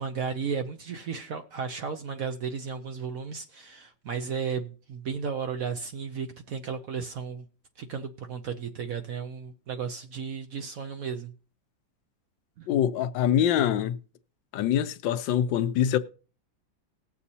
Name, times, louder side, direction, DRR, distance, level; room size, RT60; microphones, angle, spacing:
voice 1, 0.0-7.4 7.8-11.3 12.6-12.7, right 6 dB, 60° right, 0.9 m, -34 dB
voice 2, 12.7-14.0 14.5-16.0, left 10 dB, 80° left, 1.3 m, -24 dB
19.0 x 7.1 x 2.8 m
omnidirectional pair, 2.1 m